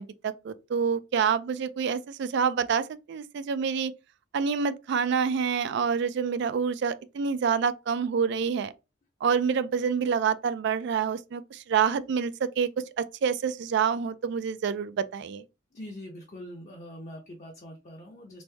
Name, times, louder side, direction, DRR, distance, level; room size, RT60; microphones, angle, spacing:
voice 1, 0.0-3.9 4.3-8.7 9.2-12.7 13.0-15.4, right 6 dB, 65° right, 0.3 m, -27 dB
voice 2, 15.7-18.4, equal, 40° left, 0.6 m, -43 dB
3.1 x 2.6 x 3.3 m
head